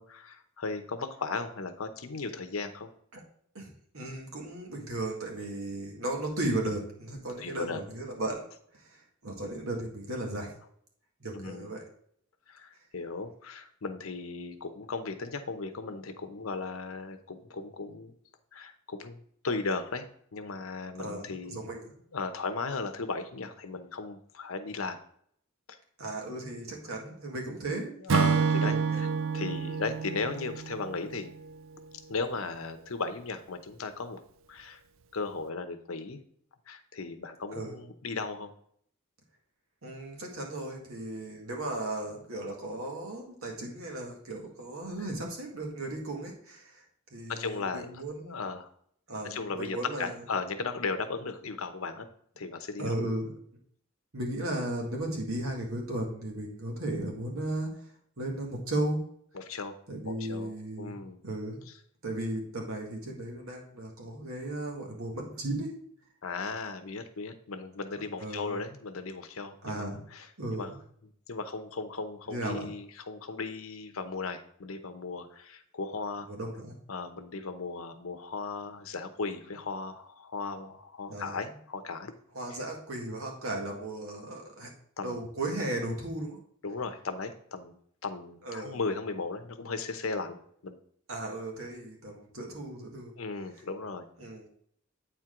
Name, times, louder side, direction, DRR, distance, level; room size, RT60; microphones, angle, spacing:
voice 1, 0.0-2.9 7.4-7.8 11.3-11.7 12.5-18.1 18.5-20.1 20.3-21.7 22.1-25.0 25.7-25.8 28.0-29.1 29.3-31.3 32.1-34.2 34.5-34.8 35.1-36.2 36.7-38.5 47.3-47.9 48.3-48.7 49.2-52.1 52.4-53.0 59.3-59.8 60.1-61.2 66.2-69.8 70.1-70.3 70.5-70.7 71.3-76.3 76.9-82.1 82.5-82.6 85.0-85.2 86.6-87.8 88.0-90.4 90.6-90.8 93.2-94.1, left 4 dB, 85° left, 8 dB, 0.8 m, -36 dB
voice 2, 3.9-8.5 8.8-10.5 11.2-11.8 21.0-21.9 26.0-27.9 28.5-29.0 29.3-29.4 37.5-37.7 39.8-46.8 47.1-48.4 49.1-50.2 52.8-53.3 54.1-57.7 58.2-59.0 59.9-61.0 61.2-61.6 62.0-65.7 68.2-68.6 69.6-70.0 70.4-70.8 72.3-72.7 76.3-76.8 81.1-81.4 82.3-84.7 85.0-86.4 88.4-88.8 91.1-93.1 94.2-94.4, right 1 dB, 85° right, 0 dB, 1.9 m, -35 dB
Acoustic guitar / Strum, 28.1-31.5, right 6 dB, 70° right, 0.4 m, -28 dB
8.6 x 4.5 x 3.7 m, 0.65 s
head